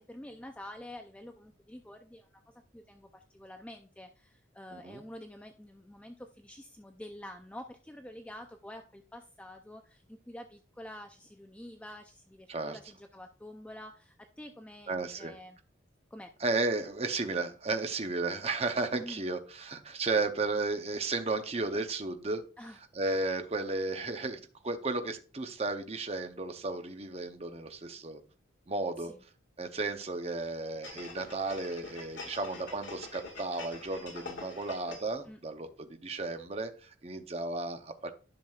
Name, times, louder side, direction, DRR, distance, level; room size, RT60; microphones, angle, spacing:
voice 1, 0.0-15.6 16.1-16.3 18.9-19.2 22.6-22.8 29.1-29.2 35.3-35.4, left 1 dB, 5° left, 0.4 m, -48 dB
voice 2, 4.7-5.0 12.5-12.8 14.9-15.3 16.4-22.4 22.9-28.2 28.7-29.1 29.6-38.1, right 3 dB, 35° right, 0.7 m, -34 dB
sound 1, 30.8-35.2 35.6-35.7, left 3 dB, 85° left, 1.8 m, -45 dB
10.5 x 6.0 x 2.3 m
head